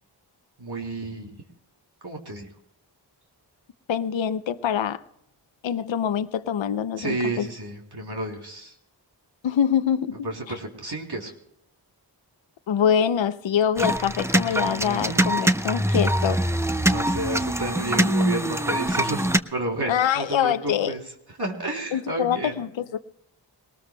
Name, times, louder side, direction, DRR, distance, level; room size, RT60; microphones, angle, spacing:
voice 1, 0.6-1.4 2.0-2.5 7.0-8.8 10.2-11.3 14.9-15.3 16.9-21.0 21.4-22.5, right 2 dB, 60° right, 3.4 m, -31 dB
voice 2, 3.9-5.0 5.6-7.5 9.4-10.3 12.7-16.4 19.9-20.9 21.9-23.0, left 8 dB, 80° left, 0.7 m, -24 dB
sound 1, 13.8-19.4, right 1 dB, 5° right, 0.7 m, -23 dB
22.0 x 19.0 x 2.2 m
cardioid pair, 60°, 44 cm